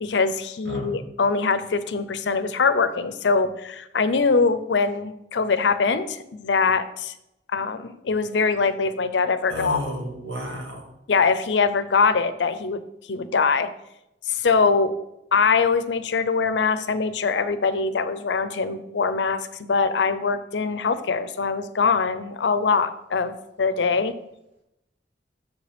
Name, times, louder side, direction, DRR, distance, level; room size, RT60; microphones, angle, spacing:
voice 1, 0.0-7.1 7.5-9.8 11.1-12.8 13.1-13.7 14.3-14.9 15.3-24.1, left 4 dB, 85° left, 12 dB, 0.6 m, -23 dB
voice 2, 9.5-10.8, equal, 90° right, 0 dB, 2.1 m, -32 dB
6.7 x 5.1 x 5.2 m, 0.85 s
head